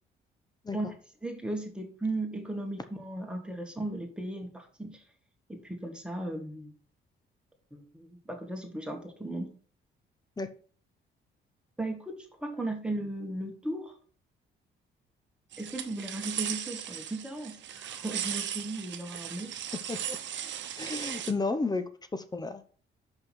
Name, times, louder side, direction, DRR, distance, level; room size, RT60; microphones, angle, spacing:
voice 1, 1.2-5.0 5.5-6.7 7.7-9.5 11.8-13.9 15.6-19.6, right 1 dB, 5° right, 2 dB, 1.9 m, -36 dB
sound 1, 15.5-21.3, right 9 dB, 65° right, 0.9 m, -37 dB
voice 2, 20.8-21.8 22.1-22.6, left 3 dB, 20° left, 10 dB, 0.8 m, -32 dB
5.7 x 5.4 x 6.3 m, 0.43 s
cardioid pair, 90°, 20 cm